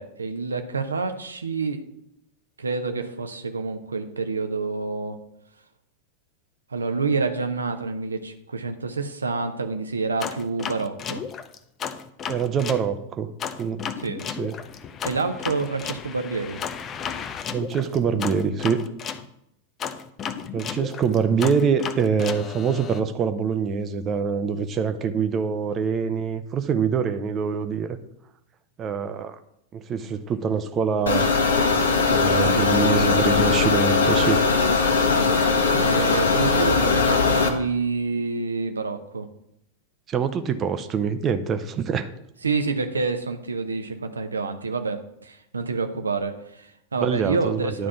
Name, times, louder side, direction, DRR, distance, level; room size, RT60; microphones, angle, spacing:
voice 1, 0.0-1.8 2.6-5.2 6.7-11.2 14.0-14.2 15.0-16.6 32.2-32.7 35.7-39.3 42.4-47.9, right 4 dB, 75° right, 7 dB, 0.8 m, -28 dB
sound 1, 10.2-12.8 13.4-19.2 19.8-23.0, left 7 dB, 25° left, 0.5 m, -34 dB
voice 2, 12.3-13.3 13.6-13.9 14.4-14.6 17.5-18.9 20.5-28.0 28.8-29.4 29.7-31.3 32.1-34.4 40.1-42.1 46.9-47.9, right 6 dB, 30° right, 9 dB, 0.7 m, -25 dB
sound 2, 31.1-37.5, left 4 dB, 70° left, 1.1 m, -20 dB
10.0 x 3.7 x 7.0 m, 0.76 s
figure-of-eight pair, 90°, 0 cm